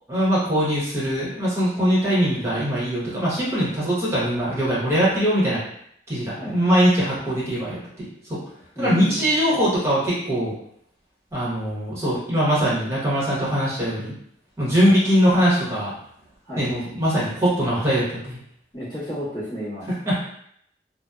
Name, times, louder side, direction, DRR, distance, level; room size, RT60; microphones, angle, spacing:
voice 1, 0.1-5.6 6.1-8.4 8.8-10.5 11.3-14.1 14.6-15.9 16.6-18.4 19.9-20.2, equal, 15° right, -8 dB, 0.9 m, -22 dB
voice 2, 8.7-9.5 14.8-15.0 16.5-16.7 18.7-19.9, equal, 25° left, -11 dB, 1.1 m, -32 dB
2.7 x 2.0 x 2.3 m, 0.71 s
head